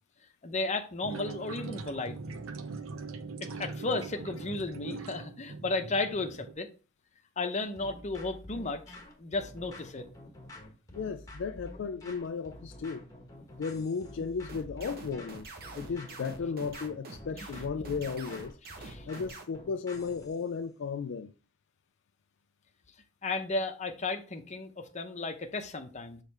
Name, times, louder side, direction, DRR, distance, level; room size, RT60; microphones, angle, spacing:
voice 1, 0.4-2.2 3.4-6.7 7.4-10.1 18.8-19.1 23.2-26.2, left 3 dB, 35° left, 0.8 m, -34 dB
sound 1, 1.0-6.5, right 4 dB, 90° right, 0.6 m, -41 dB
sound 2, 7.8-20.4, left 1 dB, 15° left, 1.2 m, -48 dB
voice 2, 10.9-13.1 13.6-15.5 15.8-18.6 19.1-21.3, left 5 dB, 60° left, 0.4 m, -35 dB
sound 3, 14.5-19.4, right 3 dB, 50° right, 1.1 m, -45 dB
6.5 x 3.2 x 4.6 m
head